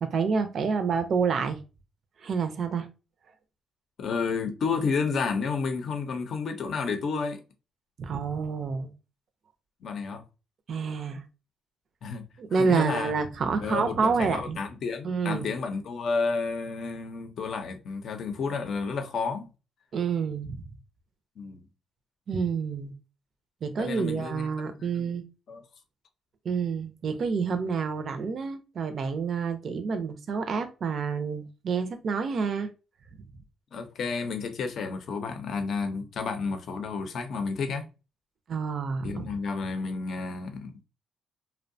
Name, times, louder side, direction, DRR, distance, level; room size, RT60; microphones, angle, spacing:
voice 1, 0.0-1.6 2.2-2.9 8.0-8.9 10.7-11.2 12.4-14.6 15.0-15.5 19.9-20.6 22.3-22.9 23.6-25.2 26.4-32.7 38.5-39.3, right 5 dB, 55° right, 0.4 m, -28 dB
voice 2, 4.0-7.4 9.8-10.2 12.0-12.2 12.5-13.1 13.6-19.5 21.4-21.6 23.8-24.5 24.8-25.1 25.5-25.6 33.7-37.9 39.0-40.8, left 4 dB, 65° left, 0.5 m, -31 dB
2.7 x 2.1 x 2.6 m
cardioid pair, 90°, 0 cm